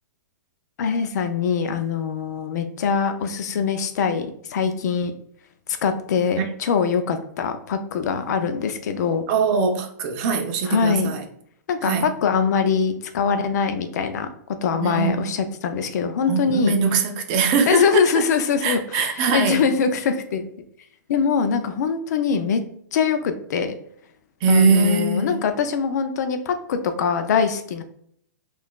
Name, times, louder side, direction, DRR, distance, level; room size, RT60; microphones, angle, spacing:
voice 1, 0.8-5.1 5.8-9.2 10.6-11.1 11.7-14.3 14.6-16.8 17.7-20.5 21.1-22.6 22.9-23.7 24.5-27.8, left 6 dB, 60° left, 0.5 m, -23 dB
voice 2, 9.3-11.2 11.8-12.0 14.8-15.2 16.3-18.0 18.6-19.6 24.4-25.4, right 4 dB, 35° right, 0.5 m, -21 dB
3.6 x 2.5 x 2.3 m
hypercardioid pair, 145°, 10 cm